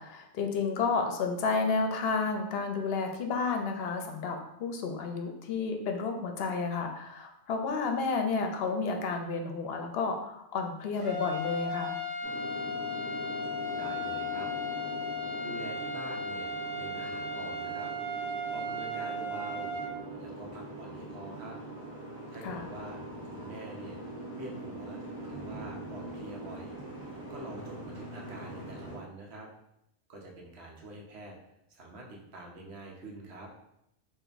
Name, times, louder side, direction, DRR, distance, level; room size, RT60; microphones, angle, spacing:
voice 1, 0.0-12.0 22.4-22.7, left 4 dB, 70° left, 4 dB, 0.8 m, -31 dB
sound 1, 10.9-19.9, left 2 dB, 40° right, 1.0 m, -36 dB
Boat Water vehicle, 12.2-29.0, right 2 dB, 20° left, 1.1 m, -42 dB
voice 2, 13.7-14.5 15.4-16.5 16.8-17.9 18.5-19.8 20.2-21.6 22.3-24.0 24.3-26.7 27.3-29.5 30.1-31.4 31.7-33.5, right 2 dB, 80° right, 0 dB, 1.0 m, -46 dB
3.3 x 2.6 x 3.9 m, 0.81 s
omnidirectional pair, 1.1 m